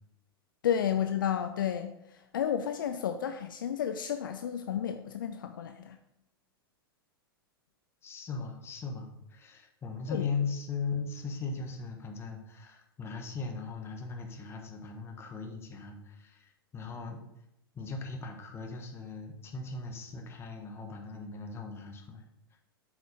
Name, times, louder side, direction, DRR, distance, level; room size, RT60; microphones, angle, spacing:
voice 1, 0.6-1.9 2.3-6.0 10.1-10.3, left 9 dB, 60° left, 8 dB, 0.5 m, -31 dB
voice 2, 8.0-17.2 17.7-22.2, left 4 dB, 20° left, 3 dB, 1.3 m, -38 dB
7.8 x 5.0 x 5.2 m, 0.85 s
figure-of-eight pair, 95°, 13 cm